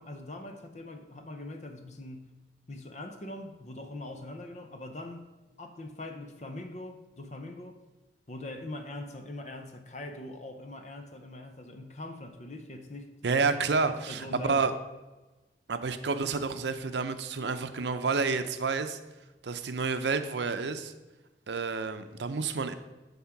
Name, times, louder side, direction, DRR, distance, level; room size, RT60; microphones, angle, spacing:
voice 1, 0.0-2.3 2.7-5.3 5.6-7.8 8.3-13.2 13.9-14.7, left 1 dB, 40° left, 5 dB, 0.7 m, -42 dB
voice 2, 13.2-14.7 15.7-19.0 19.4-20.9 21.5-22.7, right 4 dB, 80° right, 9 dB, 0.6 m, -29 dB
9.5 x 3.6 x 5.9 m, 1.1 s
head